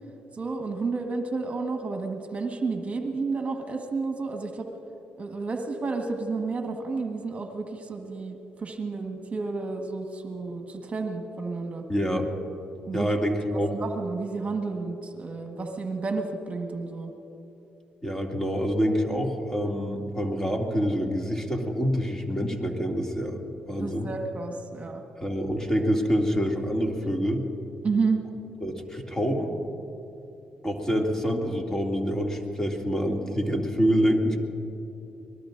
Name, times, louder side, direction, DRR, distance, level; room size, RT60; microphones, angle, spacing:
voice 1, 0.3-4.7 5.2-11.8 12.8-13.1 13.5-17.1 23.8-25.0 27.8-28.2, right 4 dB, 40° right, 3 dB, 1.5 m, -31 dB
voice 2, 11.9-12.3 12.9-13.7 18.0-23.4 23.7-24.1 25.2-27.4 28.6-29.5 30.6-34.4, equal, 15° left, 1 dB, 2.5 m, -26 dB
24.0 x 20.0 x 2.6 m, 2.9 s
supercardioid pair, 55°, 3 cm